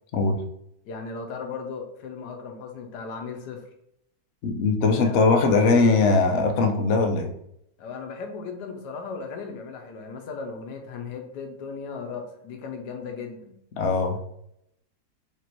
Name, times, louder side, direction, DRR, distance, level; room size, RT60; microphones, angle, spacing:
voice 1, 0.8-3.7 4.9-5.7 7.8-13.5, left 5 dB, 80° left, 4 dB, 1.3 m, -36 dB
voice 2, 4.4-7.3 13.8-14.2, left 3 dB, 65° left, 4 dB, 0.7 m, -20 dB
4.6 x 2.9 x 2.9 m, 0.76 s
omnidirectional pair, 1.8 m